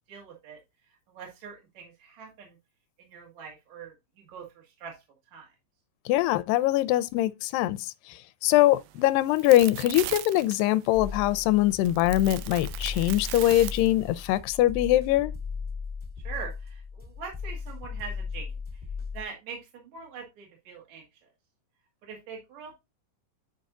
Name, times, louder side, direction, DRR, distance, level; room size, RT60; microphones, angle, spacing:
voice 1, 0.1-0.6 1.1-2.6 3.0-5.0 5.3-5.5 16.2-18.8 19.1-21.3 22.0-22.7, right 6 dB, 60° right, 2.9 m, -43 dB
voice 2, 6.1-15.3, left 15 dB, 85° left, 2.3 m, -23 dB
sound 1, 8.5-14.4, right 15 dB, 85° right, 2.4 m, -40 dB
sound 2, 10.9-19.2, left 5 dB, 5° left, 1.1 m, -37 dB
9.5 x 5.3 x 2.5 m
omnidirectional pair, 4.0 m